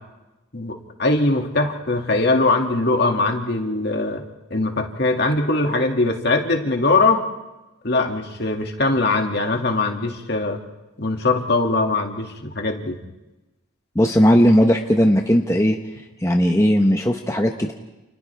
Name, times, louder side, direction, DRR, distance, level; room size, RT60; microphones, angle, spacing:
voice 1, 0.5-4.2 4.5-7.2 7.8-10.6 11.0-13.0, left 2 dB, 50° left, 3 dB, 2.3 m, -21 dB
voice 2, 13.9-15.8 16.2-17.7, equal, 15° left, 3 dB, 1.0 m, -17 dB
30.0 x 29.5 x 3.5 m, 1.0 s
head